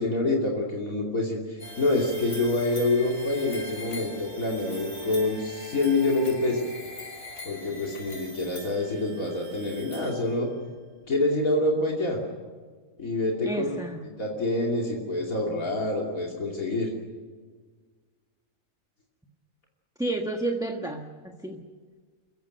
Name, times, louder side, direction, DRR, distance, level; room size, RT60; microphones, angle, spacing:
voice 1, 0.0-6.7 7.4-10.5 11.1-12.2 13.0-13.8 14.2-16.9, left 2 dB, 80° left, -1 dB, 3.2 m, -26 dB
sound 1, 1.6-10.7, left 1 dB, 60° left, 6.8 m, -42 dB
voice 2, 13.4-14.0 20.0-21.6, right 2 dB, 5° right, 3 dB, 1.3 m, -31 dB
29.5 x 16.0 x 9.2 m, 1.5 s
omnidirectional pair, 1.4 m